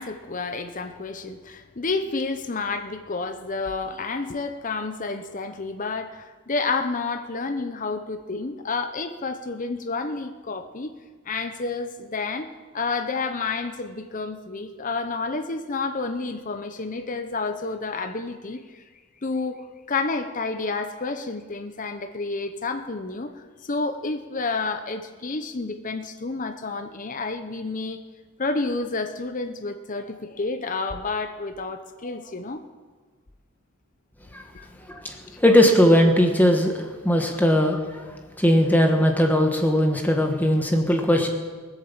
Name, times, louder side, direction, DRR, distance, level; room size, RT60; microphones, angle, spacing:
voice 1, 0.0-10.9 11.3-12.5 12.7-18.8 19.2-23.3 23.6-28.0 28.4-32.6 34.5-34.7, left 3 dB, 35° left, 7 dB, 0.7 m, -30 dB
voice 2, 34.9-37.8 38.4-41.3, equal, 10° left, 3 dB, 1.4 m, -19 dB
19.5 x 8.1 x 7.3 m, 1.4 s
head